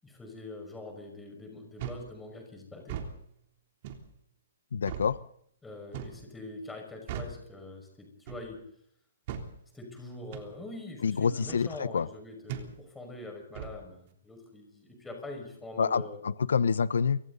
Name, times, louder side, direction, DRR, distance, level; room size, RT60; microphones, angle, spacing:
voice 1, 0.0-3.0 5.6-8.6 9.7-16.2, left 2 dB, 5° left, 3 dB, 5.8 m, -44 dB
sound 1, 1.8-2.1 2.8-3.1 3.8-4.1 4.9-5.1 5.9-6.2 7.1-7.4 8.3-8.5 9.3-9.5 10.3-10.5 11.5-11.7 12.5-12.7 13.6-13.8, right 8 dB, 35° right, 3.5 m, -38 dB
voice 2, 4.7-5.2 11.0-12.1 15.8-17.2, left 6 dB, 85° left, 15 dB, 1.0 m, -27 dB
28.5 x 25.0 x 4.1 m, 0.68 s
hypercardioid pair, 170°, 0 cm